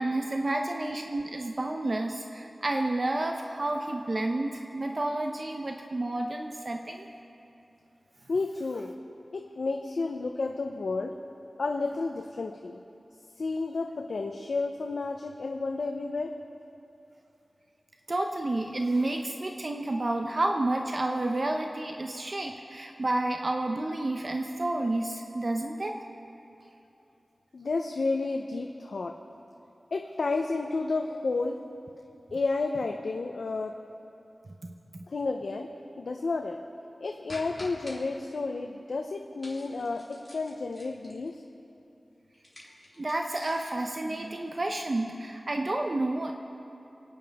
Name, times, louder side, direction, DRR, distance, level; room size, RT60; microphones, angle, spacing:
voice 1, 0.0-7.1 18.1-26.0 43.0-46.3, right 2 dB, 45° right, 3 dB, 0.7 m, -30 dB
voice 2, 8.3-8.9 9.3-11.1 11.6-12.8 13.4-16.3 27.5-29.2 29.9-31.6 32.3-33.8 35.1-35.7 36.0-36.6 37.0-41.4, left 3 dB, 80° left, 3 dB, 0.6 m, -31 dB
sound 1, 37.3-38.0 39.4-41.3 42.3-43.8, left 1 dB, 25° left, 3.5 m, -47 dB
28.5 x 9.6 x 3.5 m, 2.8 s
wide cardioid pair, 75°, 0 cm